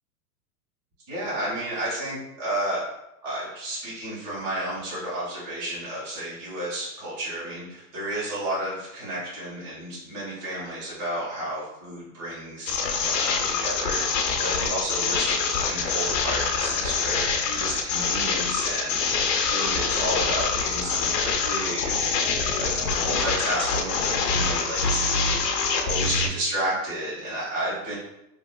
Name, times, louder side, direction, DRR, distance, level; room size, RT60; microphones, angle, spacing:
voice 1, 1.1-2.8 3.2-12.7 13.0-14.0 14.4-19.0 19.4-25.5 25.8-28.0, right 1 dB, 30° right, -8 dB, 1.4 m, -32 dB
sound 1, 12.7-26.3, left 5 dB, 85° left, 0.6 m, -25 dB
2.8 x 2.4 x 2.2 m, 0.84 s
hypercardioid pair, 125°, 48 cm